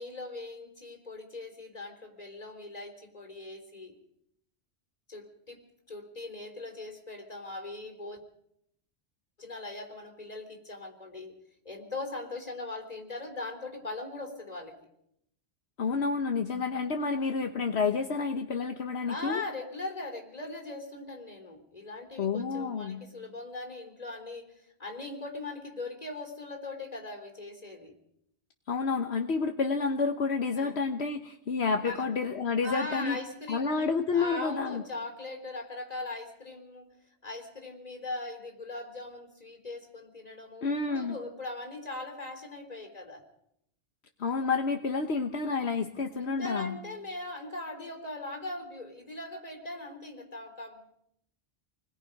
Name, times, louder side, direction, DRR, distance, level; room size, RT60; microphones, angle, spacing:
voice 1, 0.0-3.9 5.1-5.6 5.9-8.2 9.4-11.4 11.7-14.8 19.1-27.9 30.6-30.8 31.8-32.1 32.6-37.0 37.2-43.2 46.2-50.9, left 2 dB, 35° left, 3 dB, 3.8 m, -40 dB
voice 2, 15.8-19.4 22.2-23.0 28.7-33.2 33.5-34.8 40.6-41.2 44.2-46.8, left 4 dB, 70° left, 5 dB, 1.4 m, -29 dB
28.5 x 21.0 x 5.3 m, 0.76 s
omnidirectional pair, 1.1 m